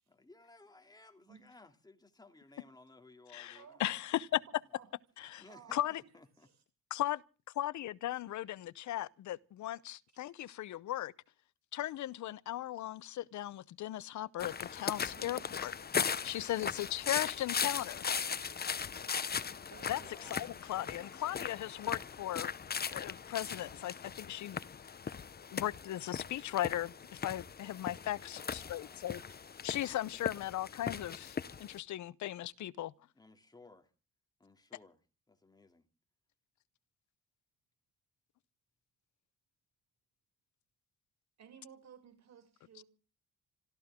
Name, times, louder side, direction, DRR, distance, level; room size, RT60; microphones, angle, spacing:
voice 1, 0.1-4.2 5.4-6.5 19.9-20.3 28.2-29.2 32.9-33.9 34.4-35.0 35.3-35.9, left 3 dB, 15° left, 2.7 m, -59 dB
voice 2, 3.3-4.4 5.2-5.4 5.7-6.0 6.9-7.2 7.6-11.1 11.7-15.7 16.2-18.0 19.9-20.0 20.3-22.5 22.9-24.6 25.5-29.2 29.6-32.9, left 13 dB, 70° left, 0.8 m, -37 dB
voice 3, 5.5-6.5 15.1-15.5 16.9-17.0 17.6-18.1 19.7-21.1 23.6-23.9 24.7-24.8 29.0-29.4 41.4-42.8, right 7 dB, 60° right, 6.6 m, -58 dB
sound 1, 14.4-31.8, left 6 dB, 30° left, 0.9 m, -39 dB
26.5 x 14.0 x 3.7 m
cardioid pair, 90°, 30 cm